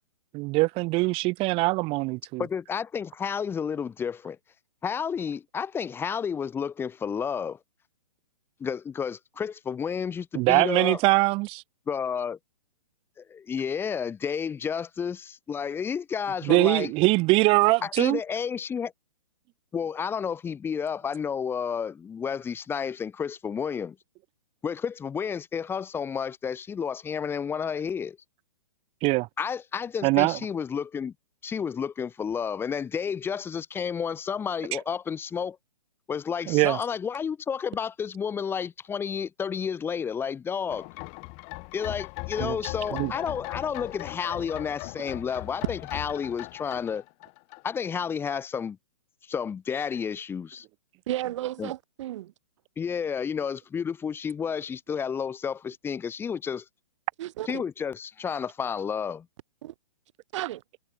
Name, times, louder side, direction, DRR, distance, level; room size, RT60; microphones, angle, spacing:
voice 1, 0.3-2.4 10.4-11.6 16.4-18.2 29.0-29.3 30.0-30.4 36.5-36.8 42.4-42.6 42.9-43.1, right 23 dB, 30° right, 1.9 m, -22 dB
voice 2, 2.4-4.4 4.8-7.6 8.6-11.0 11.9-12.4 13.2-16.9 17.8-18.9 19.7-24.0 24.6-28.2 29.4-31.1 31.4-35.6 36.1-40.9 41.7-47.0 47.6-48.8 49.3-50.6 51.6-51.7 52.8-56.6 57.5-59.3, left 7 dB, 10° left, 1.3 m, -31 dB
sound 1, 40.7-48.1 48.3-48.4, left 33 dB, 35° left, 6.5 m, -38 dB
voice 3, 51.1-52.3 57.2-57.6 59.6-59.7 60.3-60.6, right 14 dB, 50° right, 6.4 m, -33 dB
hypercardioid pair, 135°, 20 cm